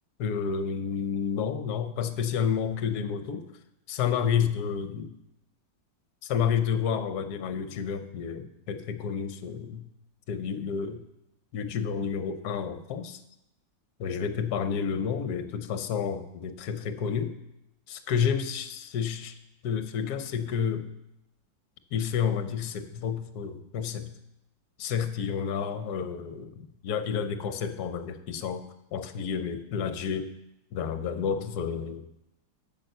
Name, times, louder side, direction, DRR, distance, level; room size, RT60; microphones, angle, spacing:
voice 1, 0.2-3.4 3.9-5.1 6.2-9.9 10.3-11.0 11.5-13.2 14.0-17.3 17.9-19.3 19.6-20.9 21.9-24.1 24.8-28.6 28.9-30.3 30.7-32.1, left 7 dB, 60° left, 9 dB, 1.2 m, -30 dB
8.8 x 7.8 x 6.7 m, 0.88 s
omnidirectional pair, 2.1 m